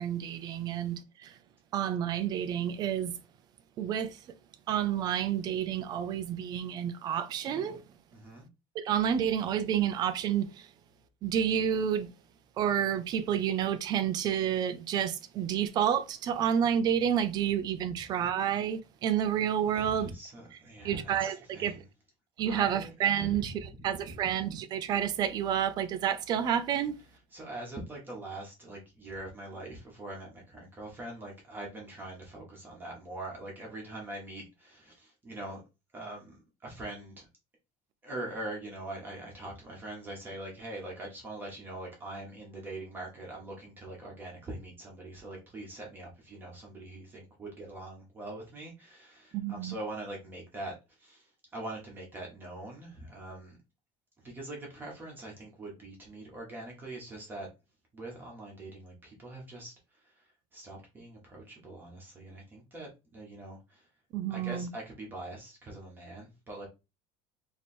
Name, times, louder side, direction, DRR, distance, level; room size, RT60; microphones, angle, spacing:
voice 1, 0.0-1.4 1.7-3.2 3.8-4.4 4.7-7.8 8.7-10.7 11.2-12.1 12.6-20.1 20.8-21.8 22.4-23.5 23.8-26.9 49.3-49.8 64.1-64.7, right 9 dB, 30° right, 0.4 m, -29 dB
voice 2, 8.1-8.5 19.7-21.8 22.5-22.9 27.3-35.6 35.9-37.3 38.0-53.6 54.2-57.5 57.9-63.9 64.3-66.7, right 2 dB, 15° right, 1.1 m, -43 dB
3.1 x 2.9 x 4.2 m
cardioid pair, 175°, 13 cm